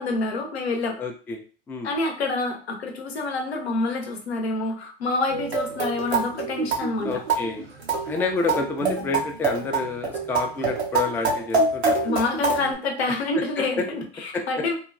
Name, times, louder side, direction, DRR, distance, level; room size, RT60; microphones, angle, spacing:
voice 1, 0.0-1.0 1.8-7.2 12.0-14.7, left 3 dB, 85° left, 3 dB, 0.7 m, -27 dB
voice 2, 1.0-1.4 1.7-1.9 7.0-7.6 8.0-12.2 13.3-13.4, left 3 dB, 5° left, 2 dB, 0.3 m, -29 dB
sound 1, 5.3-12.7, right 3 dB, 90° right, 0.7 m, -26 dB
3.1 x 2.1 x 2.4 m, 0.40 s
hypercardioid pair, 90°, 31 cm